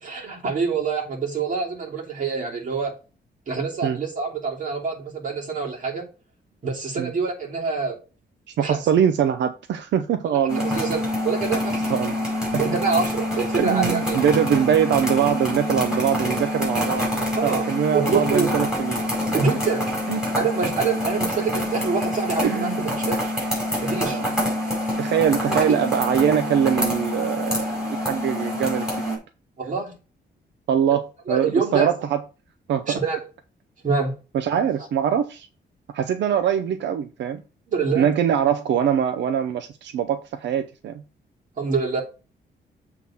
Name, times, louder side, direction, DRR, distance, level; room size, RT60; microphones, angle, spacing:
voice 1, 0.0-2.9 3.5-6.0 6.6-8.0 8.6-8.8 10.2-11.8 12.6-14.2 17.3-17.7 17.9-18.5 19.3-19.9 20.3-23.3 23.8-24.2 25.5-25.8 29.6-29.9 31.3-31.9 32.9-33.2 33.8-34.1 37.7-38.1 41.6-42.0, right 5 dB, 45° right, 3.0 m, -26 dB
voice 2, 8.6-10.8 11.9-12.1 13.6-19.0 20.1-20.2 22.4-22.9 24.0-24.3 25.0-29.2 30.7-32.2 32.7-33.0 34.3-35.5 35.9-37.4 38.0-40.9, right 8 dB, 85° right, 0.7 m, -23 dB
sound 1, 10.5-29.2, left 1 dB, 5° right, 4.9 m, -26 dB
7.7 x 3.9 x 5.7 m
cardioid pair, 140°, 18 cm